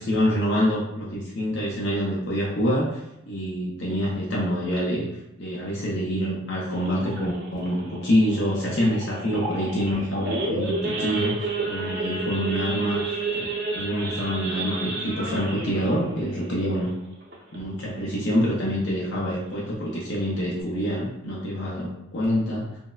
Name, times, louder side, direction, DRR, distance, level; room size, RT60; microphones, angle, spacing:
voice 1, 0.0-3.0 3.3-5.1 5.4-13.0 13.3-13.5 13.7-16.9 17.5-22.8, equal, 60° left, -4 dB, 0.5 m, -26 dB
Idling / Accelerating revving vroom / Sawing, 6.7-17.8 18.2-18.4 18.7-18.8 19.2-19.5 20.0-20.1 20.3-20.6, right 3 dB, 55° right, 0.6 m, -31 dB
3.3 x 2.0 x 2.3 m, 0.90 s
head